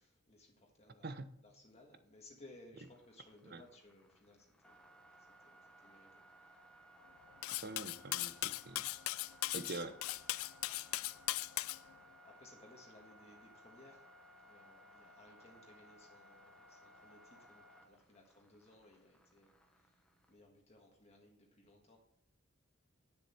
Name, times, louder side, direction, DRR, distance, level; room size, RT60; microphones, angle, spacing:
voice 1, 0.0-4.9 5.4-6.6 12.2-14.0 14.4-20.0 20.3-22.0, left 2 dB, 30° left, 0 dB, 1.5 m, -61 dB
sound 1, 2.8-20.3, equal, 5° left, 1.0 m, -61 dB
Cutlery silverware, 7.4-11.8, left 18 dB, 90° left, 0.3 m, -38 dB
voice 2, 7.5-8.8 9.5-10.0, right 2 dB, 50° right, 12 dB, 0.7 m, -45 dB
9.9 x 6.9 x 4.4 m, 0.77 s
head